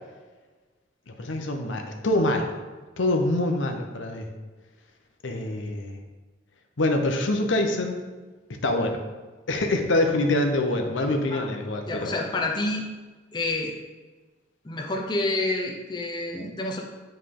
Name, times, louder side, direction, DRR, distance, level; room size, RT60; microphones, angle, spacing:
voice 1, 1.1-2.5 3.0-4.3 5.2-6.0 6.8-8.0 8.6-9.0 9.5-12.1, left 1 dB, 85° left, 4 dB, 0.8 m, -25 dB
voice 2, 11.9-12.9 13.3-13.7 14.6-16.8, left 2 dB, 25° left, 0 dB, 0.6 m, -28 dB
8.9 x 3.3 x 3.7 m, 1.3 s
head